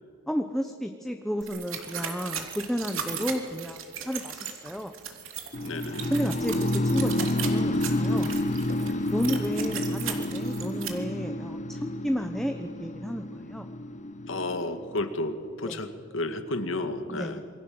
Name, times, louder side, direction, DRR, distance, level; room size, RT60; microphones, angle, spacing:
voice 1, 0.3-4.9 6.1-8.4 9.1-13.7 15.7-15.8 17.1-17.4, equal, ahead, 5 dB, 1.0 m, -32 dB
sound 1, 1.4-10.9, right 7 dB, 80° right, 3.1 m, -37 dB
sound 2, 5.5-15.5, left 1 dB, 35° left, 0.7 m, -29 dB
voice 2, 5.6-6.1 9.2-9.4 14.3-17.4, left 2 dB, 70° left, 8 dB, 2.0 m, -32 dB
27.5 x 22.5 x 7.8 m, 2.2 s
head